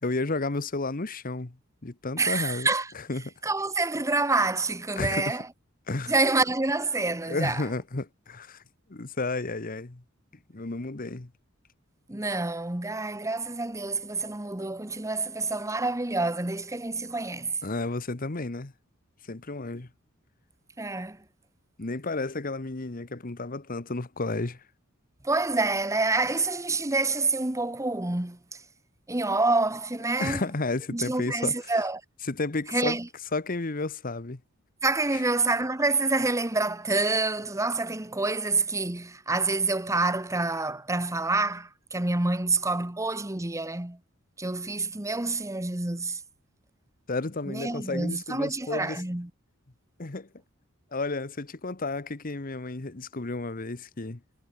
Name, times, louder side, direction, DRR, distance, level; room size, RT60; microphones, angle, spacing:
voice 1, 0.0-1.6 1.8-2.7 3.1-3.3 5.0-5.4 5.9-6.1 7.3-8.6 8.9-10.0 10.5-11.3 17.6-18.7 19.3-19.9 21.8-24.6 30.2-31.5 32.3-33.0 33.3-34.4 35.1-35.2 47.1-49.0 50.0-50.3 50.9-54.2, left 3 dB, 45° left, 1.2 m, -32 dB
voice 2, 2.2-2.9 3.4-5.5 6.1-7.6 12.1-17.6 20.8-21.2 25.2-28.4 29.1-30.4 30.9-32.0 32.7-33.1 34.8-44.0 44.4-46.2 47.5-49.3, right 3 dB, 15° right, 1.2 m, -27 dB
head